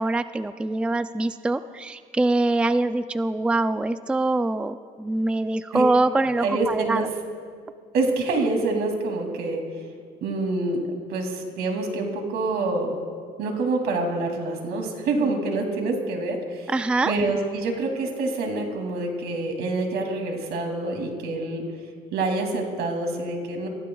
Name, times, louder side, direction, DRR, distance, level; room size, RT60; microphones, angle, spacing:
voice 1, 0.0-7.1 16.7-17.1, right 2 dB, 5° right, 11 dB, 0.4 m, -24 dB
voice 2, 6.4-7.1 7.9-9.6 10.2-10.8 11.1-13.0 13.4-16.7 17.1-21.6 22.1-23.7, right 3 dB, 75° right, 3 dB, 2.6 m, -26 dB
28.5 x 15.5 x 2.3 m, 2.1 s
cardioid pair, 110°, 17 cm